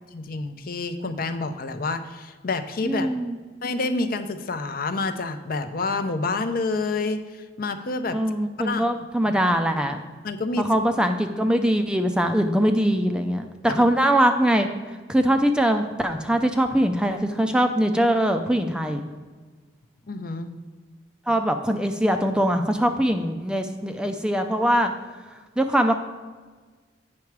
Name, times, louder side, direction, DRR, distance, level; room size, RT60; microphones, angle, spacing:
voice 1, 0.1-3.1 3.6-8.2 8.6-8.9 9.2-9.3 10.2-10.7 13.7-13.9 20.1-20.6, left 3 dB, 50° left, 9 dB, 0.6 m, -28 dB
voice 2, 2.8-3.4 8.1-10.0 10.7-14.7 15.1-19.0 21.3-24.9 25.6-25.9, equal, 5° right, 6 dB, 0.4 m, -22 dB
8.5 x 5.8 x 4.6 m, 1.4 s
head